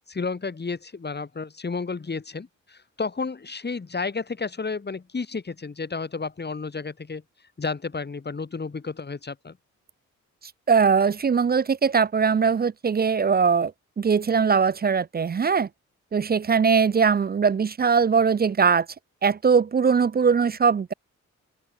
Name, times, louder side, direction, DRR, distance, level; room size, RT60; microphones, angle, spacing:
voice 1, 0.1-7.2 7.6-9.6, left 4 dB, 35° left, 2.1 m, -32 dB
voice 2, 10.7-13.7 14.0-15.7 16.1-18.9 19.2-20.9, right 6 dB, 30° right, 0.5 m, -21 dB
cardioid pair, 60°, 31 cm